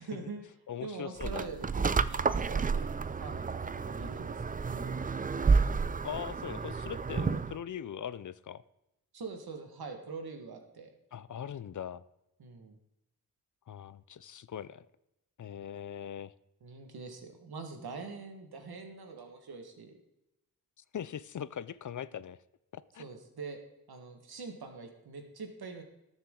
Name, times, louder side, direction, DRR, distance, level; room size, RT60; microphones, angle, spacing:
voice 1, 0.0-0.5 0.8-1.7 1.9-5.1 9.1-10.9 12.4-12.8 16.6-19.9 23.0-23.6 23.9-25.8, right 4 dB, 80° right, 4 dB, 1.8 m, -44 dB
voice 2, 0.7-1.5 6.0-8.6 11.1-12.0 13.7-14.9 15.4-16.3 20.9-22.4 22.7-23.0, left 9 dB, 55° left, 17 dB, 0.5 m, -41 dB
sound 1, 1.2-7.6, right 5 dB, 25° right, 0.4 m, -30 dB
19.5 x 7.2 x 3.8 m, 0.87 s
wide cardioid pair, 125°, 37 cm